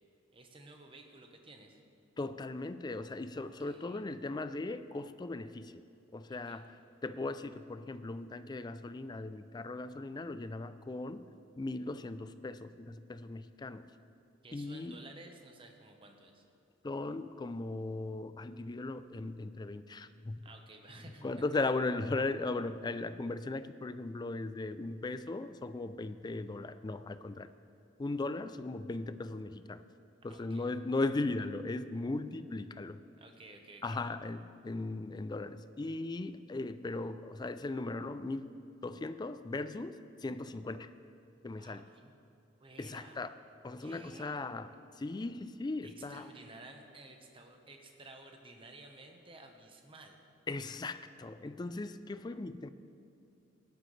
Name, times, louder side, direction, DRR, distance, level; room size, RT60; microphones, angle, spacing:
voice 1, 0.3-1.8 3.3-4.0 6.3-6.6 14.4-16.4 20.4-21.3 30.3-30.7 33.2-34.0 41.6-42.1 42.6-43.2 43.8-44.6 45.1-45.2 45.8-50.2, right 2 dB, 30° right, 3 dB, 1.1 m, -54 dB
voice 2, 2.2-5.8 6.1-6.8 7.0-11.3 11.6-13.9 14.5-15.0 16.8-20.4 21.2-27.5 28.0-29.8 30.2-33.0 33.8-38.6 38.8-40.9 41.4-41.8 42.8-43.3 43.6-46.3 50.5-52.7, left 2 dB, 20° left, 12 dB, 0.3 m, -38 dB
16.5 x 11.5 x 3.3 m, 2.5 s
head